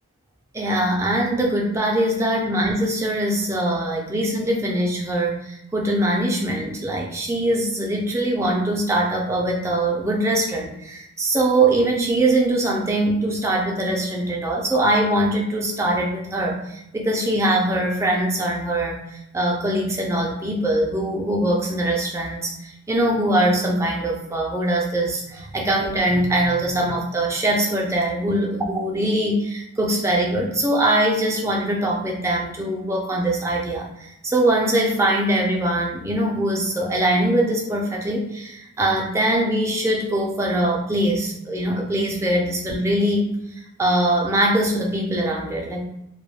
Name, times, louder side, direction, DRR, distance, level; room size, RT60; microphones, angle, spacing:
voice 1, 0.5-45.9, right 1 dB, 10° right, 0 dB, 0.3 m, -22 dB
2.2 x 2.1 x 3.1 m, 0.83 s
head